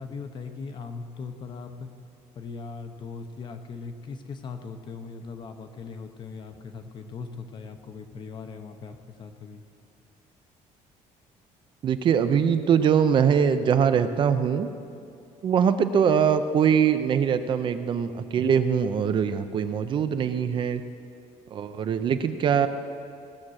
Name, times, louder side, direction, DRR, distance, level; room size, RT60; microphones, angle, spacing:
voice 1, 0.0-1.9 2.4-9.6, left 4 dB, 35° left, 7 dB, 0.8 m, -39 dB
voice 2, 11.8-14.7 15.4-20.8 21.5-22.7, right 7 dB, 40° right, 10 dB, 0.5 m, -22 dB
18.0 x 7.2 x 6.4 m, 2.4 s
cardioid pair, 170°, 13 cm